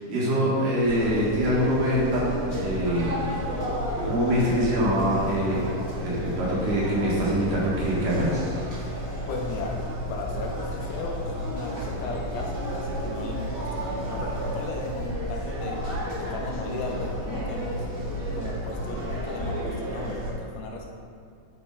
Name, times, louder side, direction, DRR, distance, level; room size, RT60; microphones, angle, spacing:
voice 1, 0.1-3.2 4.0-8.7, equal, 70° right, -6 dB, 3.3 m, -25 dB
sound 1, 0.8-20.3, equal, 25° right, 1.3 m, -31 dB
voice 2, 9.3-9.8 10.1-15.8 16.2-17.9 18.3-20.9, left 3 dB, 75° left, 0 dB, 2.4 m, -36 dB
9.7 x 6.6 x 3.9 m, 2.3 s
omnidirectional pair, 4.0 m